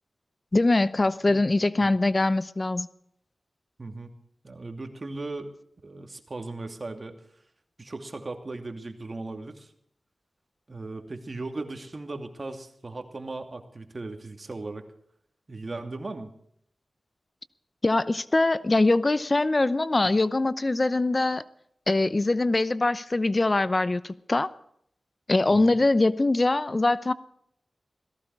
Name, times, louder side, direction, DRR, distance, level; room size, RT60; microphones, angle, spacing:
voice 1, 0.5-2.9 17.8-21.4 21.9-24.5 25.3-27.1, left 2 dB, 40° left, 0.8 m, -23 dB
voice 2, 3.8-4.1 4.4-5.5 5.8-7.2 7.8-9.7 10.7-14.8 15.5-16.3 25.5-25.8, right 2 dB, 50° right, 2.6 m, -37 dB
18.0 x 15.0 x 4.8 m
cardioid pair, 40°, 0 cm